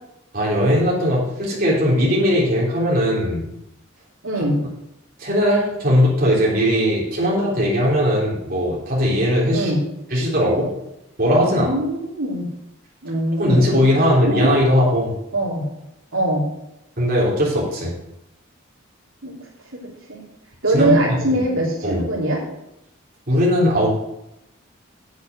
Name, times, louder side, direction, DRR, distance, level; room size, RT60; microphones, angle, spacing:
voice 1, 0.3-3.5 5.2-9.7 10.1-10.7 11.2-11.7 13.4-15.1 17.0-17.9 20.7-21.0 21.8-22.1 23.3-23.9, equal, 45° right, -5 dB, 3.6 m, -19 dB
voice 2, 4.2-4.7 9.5-9.8 11.2-12.5 13.0-13.9 14.3-14.5 15.3-15.6 16.1-16.4 19.2-19.3 19.7-19.8 20.1-20.2 20.6-22.4, right 1 dB, 90° right, -3 dB, 3.3 m, -22 dB
8.4 x 8.4 x 6.2 m, 0.85 s
head